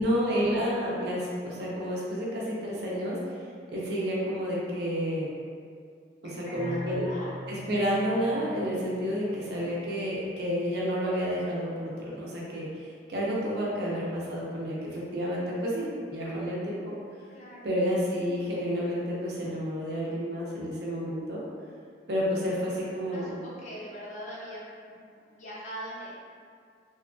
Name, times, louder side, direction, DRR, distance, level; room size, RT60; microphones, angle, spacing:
voice 1, 0.0-3.2 3.7-5.3 6.2-7.1 7.5-16.9 17.6-21.4 22.1-23.3, equal, 65° right, -5 dB, 0.6 m, -30 dB
voice 2, 6.2-7.3 17.3-17.7 22.3-22.5 22.9-25.0 25.3-26.3, equal, 45° left, -6 dB, 0.6 m, -42 dB
Keyboard (musical), 6.5-10.2, left 1 dB, 65° left, 0.9 m, -43 dB
2.7 x 2.3 x 2.5 m, 2.2 s
head